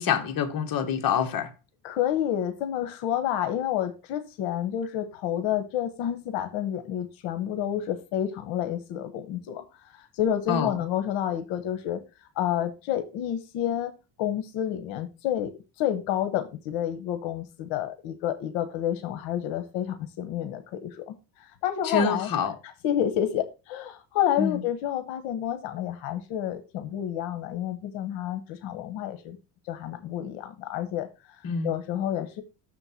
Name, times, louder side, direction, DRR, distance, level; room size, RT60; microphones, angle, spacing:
voice 1, 0.0-1.5 10.5-10.7 21.8-22.5 24.4-24.6 31.4-31.7, left 6 dB, 45° left, 1.4 m, -26 dB
voice 2, 1.8-12.0 12.4-13.9 14.2-15.5 15.8-22.3 22.6-29.4 29.6-32.4, left 10 dB, 80° left, 1.1 m, -29 dB
6.7 x 4.5 x 5.6 m
cardioid pair, 105°, 46 cm